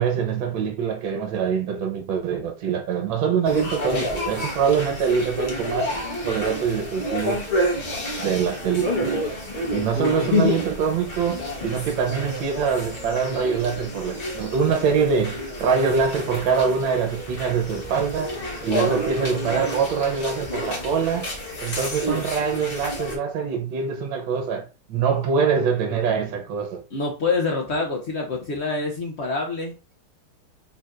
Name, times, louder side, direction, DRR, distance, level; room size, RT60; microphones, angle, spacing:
voice 1, 0.0-5.9 6.2-7.4 8.2-9.4 9.7-18.3 18.6-21.3 21.6-26.8, right 6 dB, 70° right, 1.6 m, -24 dB
sound 1, 3.5-23.2, equal, 35° left, 1.1 m, -30 dB
voice 2, 10.0-10.6 26.9-29.7, left 4 dB, 80° left, 0.6 m, -25 dB
4.4 x 4.0 x 2.5 m
omnidirectional pair, 2.2 m